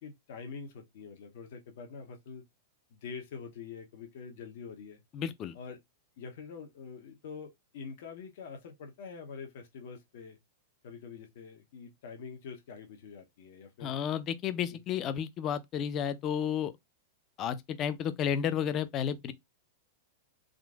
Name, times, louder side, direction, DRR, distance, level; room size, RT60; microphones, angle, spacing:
voice 1, 0.0-2.4 3.0-5.0 5.5-5.8 6.2-10.4 10.8-14.0 14.7-14.8, left 5 dB, 60° left, 0.7 m, -45 dB
voice 2, 5.1-5.5 13.8-16.7 17.4-19.3, left 8 dB, 35° left, 0.5 m, -32 dB
3.7 x 2.4 x 2.4 m
hypercardioid pair, 100°, 0 cm